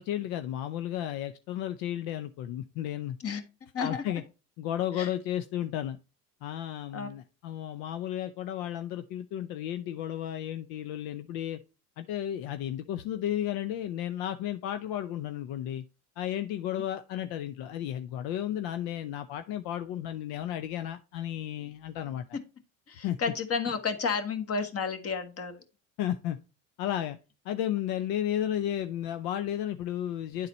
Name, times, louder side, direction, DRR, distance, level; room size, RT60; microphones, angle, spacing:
voice 1, 0.0-3.2 3.8-4.2 4.6-6.0 6.4-11.6 12.0-15.8 16.2-22.4 23.0-23.2 26.0-26.4 26.8-27.2 27.4-30.5, left 11 dB, 75° left, 10 dB, 0.6 m, -33 dB
voice 2, 22.9-25.6, left 5 dB, 40° left, 8 dB, 1.5 m, -31 dB
10.0 x 4.0 x 4.2 m, 0.31 s
supercardioid pair, 85°, 37 cm